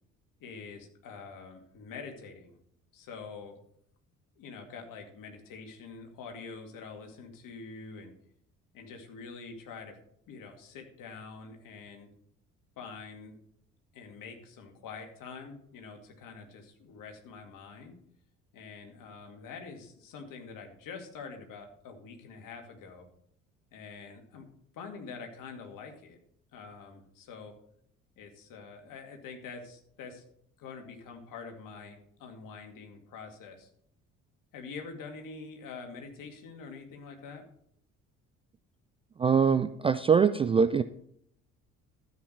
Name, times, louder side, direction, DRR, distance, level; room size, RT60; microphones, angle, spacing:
voice 1, 0.4-2.6 2.9-3.5 4.4-8.2 8.7-10.0 10.3-12.1 12.8-13.4 13.9-18.0 18.5-23.1 23.7-24.5 24.7-26.2 26.5-27.5 28.2-30.2 30.6-33.7 34.5-37.5, left 5 dB, 50° left, 4 dB, 2.4 m, -45 dB
voice 2, 39.2-40.8, right 6 dB, 15° right, 12 dB, 0.3 m, -23 dB
13.0 x 8.5 x 4.5 m, 0.67 s
figure-of-eight pair, 50°, 40 cm